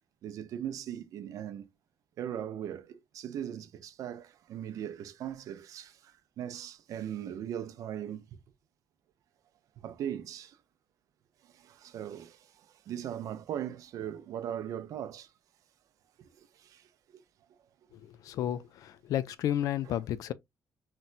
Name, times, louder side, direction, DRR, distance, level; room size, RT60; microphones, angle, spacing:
voice 1, 0.2-1.7 2.2-8.4 9.8-10.6 11.4-15.3 16.2-17.2 19.8-20.0, right 10 dB, 70° right, 0.5 m, -39 dB
voice 2, 18.2-20.3, left 11 dB, 75° left, 0.3 m, -32 dB
4.0 x 2.2 x 2.4 m
cardioid pair, 145°, 6 cm